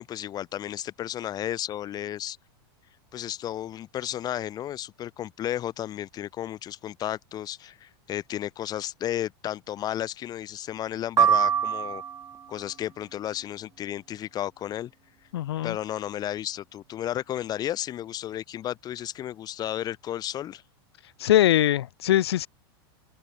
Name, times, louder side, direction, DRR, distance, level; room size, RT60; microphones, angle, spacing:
voice 1, 0.0-2.4 3.1-12.0 12.5-14.9 15.6-20.6, left 12 dB, 30° left, 5.7 m, -33 dB
sound 1, 11.2-12.4, right 8 dB, 20° right, 1.7 m, -23 dB
voice 2, 15.3-15.8 21.2-22.5, left 13 dB, 85° left, 2.2 m, -22 dB
supercardioid pair, 140°, 13 cm